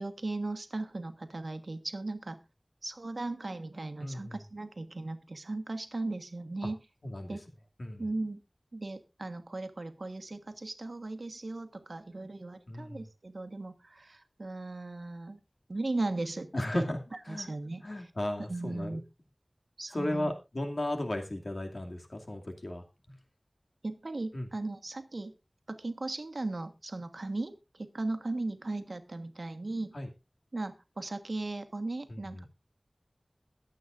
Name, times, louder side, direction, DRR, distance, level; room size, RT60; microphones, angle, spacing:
voice 1, 0.0-2.4 2.8-6.8 7.3-7.4 8.0-8.4 8.7-15.4 15.7-16.8 17.3-17.8 18.5-19.0 19.8-20.3 23.8-25.3 25.7-29.9 30.5-32.5, right 2 dB, 70° right, 8 dB, 1.3 m, -37 dB
voice 2, 4.0-4.4 7.0-7.4 7.8-8.0 12.7-13.1 16.5-17.5 17.8-19.0 19.9-23.2 24.3-24.5 29.9-30.1 32.1-32.5, left 1 dB, 65° left, 3 dB, 2.4 m, -35 dB
22.0 x 8.0 x 2.5 m, 0.26 s
wide cardioid pair, 50°, 0 cm